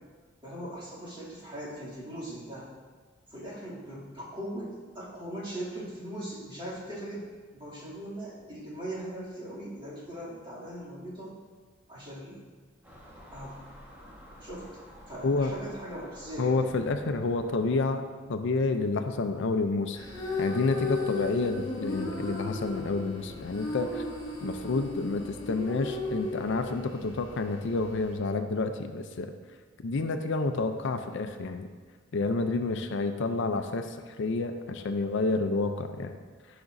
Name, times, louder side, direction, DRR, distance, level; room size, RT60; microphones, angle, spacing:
voice 1, 0.4-2.7 3.3-11.4 11.9-12.4 13.3-13.6 14.4-14.7 15.1-16.6, right 1 dB, 25° right, -8 dB, 2.5 m, -40 dB
Car passing by / Engine, 12.8-17.8, equal, 10° right, 1.2 m, -51 dB
voice 2, 16.4-18.0 18.3-20.0 20.4-24.1 24.4-29.3 29.8-31.7 32.1-36.1, left 3 dB, 65° left, 8 dB, 0.5 m, -29 dB
sound 1, 19.9-28.1, left 3 dB, 20° left, 1.4 m, -36 dB
12.0 x 5.9 x 2.6 m, 1.5 s
head